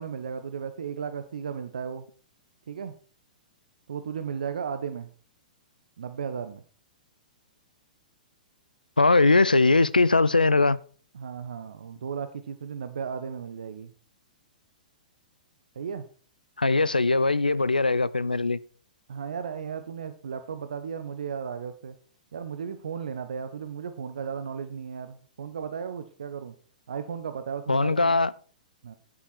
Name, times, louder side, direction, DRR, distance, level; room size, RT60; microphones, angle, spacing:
voice 1, 0.0-2.0 2.7-3.0 3.9-5.1 6.0-6.6 11.1-13.9 15.7-16.0 19.1-22.0 22.3-26.5 26.9-28.2 28.8-29.0, right 7 dB, 65° right, 1.0 m, -35 dB
voice 2, 9.0-10.8 16.6-18.6 27.7-28.3, left 3 dB, 85° left, 0.6 m, -21 dB
11.0 x 10.5 x 4.5 m
figure-of-eight pair, 110°, 5 cm